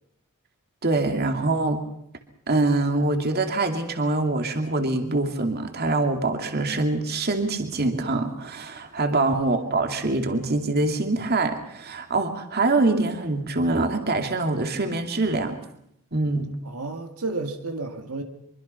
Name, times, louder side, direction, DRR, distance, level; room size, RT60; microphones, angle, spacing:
voice 1, 0.8-1.8 2.5-15.6 16.1-16.5, right 2 dB, 45° right, 5 dB, 2.6 m, -24 dB
voice 2, 16.6-18.2, right 3 dB, 80° right, 5 dB, 2.1 m, -31 dB
25.0 x 24.0 x 5.7 m, 0.74 s
head